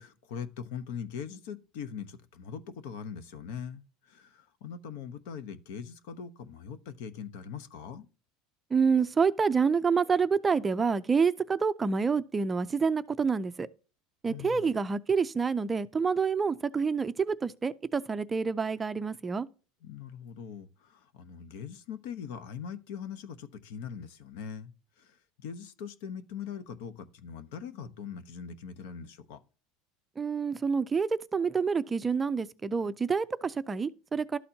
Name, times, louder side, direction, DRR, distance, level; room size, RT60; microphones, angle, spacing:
voice 1, 0.0-8.1 14.3-14.8 19.8-24.7 25.0-25.1 25.4-29.4, left 7 dB, 75° left, 0.9 m, -41 dB
voice 2, 8.7-13.7 14.2-19.5 30.2-34.4, right 5 dB, 15° right, 0.4 m, -28 dB
12.5 x 4.3 x 2.8 m
supercardioid pair, 140°, 0 cm